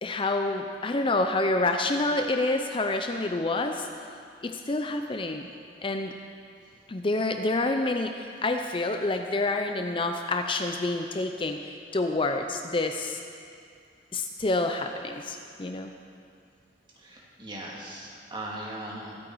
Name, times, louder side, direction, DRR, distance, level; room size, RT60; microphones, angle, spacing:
voice 1, 0.0-3.9 4.4-5.5 5.8-6.1 6.9-11.6 11.9-13.2 14.1-15.9, left 2 dB, 30° left, 5 dB, 0.6 m, -28 dB
voice 2, 17.0-19.1, right 1 dB, 25° right, -3 dB, 2.3 m, -39 dB
22.0 x 8.9 x 4.7 m, 2.4 s
head